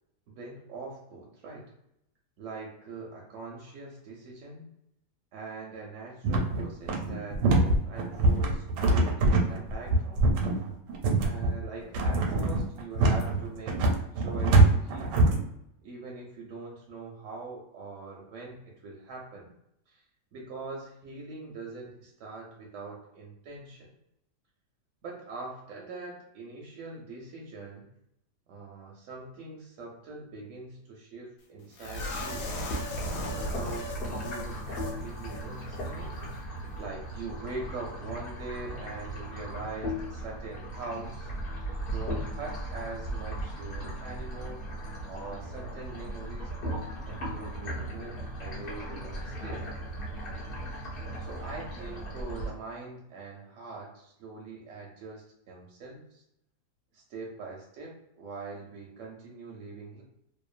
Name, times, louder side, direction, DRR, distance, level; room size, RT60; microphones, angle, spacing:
voice 1, 0.3-1.7 2.4-4.7 5.3-10.3 11.2-15.2 15.8-19.5 19.9-20.0 20.3-23.9 25.0-27.9 28.5-32.6 33.1-36.1 36.8-41.3 41.9-44.7 45.0-49.7 51.2-56.2 56.9-60.0, right 3 dB, 70° right, -1 dB, 0.7 m, -43 dB
sound 1, 6.2-15.4, right 2 dB, 85° right, 1.2 m, -23 dB
sound 2, 31.8-35.0 35.2-35.4 35.8-35.9, left 1 dB, 75° left, 1.1 m, -36 dB
sound 3, 32.7-52.5, right 1 dB, 50° left, 0.7 m, -37 dB
2.9 x 2.0 x 2.4 m, 0.79 s
omnidirectional pair, 1.8 m